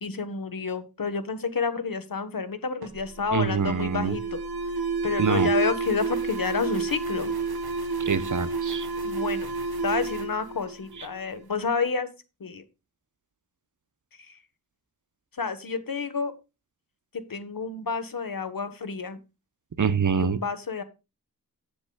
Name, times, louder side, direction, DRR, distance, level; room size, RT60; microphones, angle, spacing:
voice 1, 0.0-4.4 5.0-7.3 9.0-9.5 9.8-12.1 12.4-12.6 14.2-14.4 15.4-16.3 17.3-19.2 20.1-20.8, left 5 dB, 65° left, 1.3 m, -30 dB
Alarm, 2.8-11.4, right 4 dB, 75° right, 1.4 m, -30 dB
voice 2, 3.3-4.2 5.2-5.5 8.0-8.9 19.8-20.4, right 6 dB, 55° right, 0.8 m, -25 dB
15.5 x 6.9 x 2.3 m
wide cardioid pair, 60°, 37 cm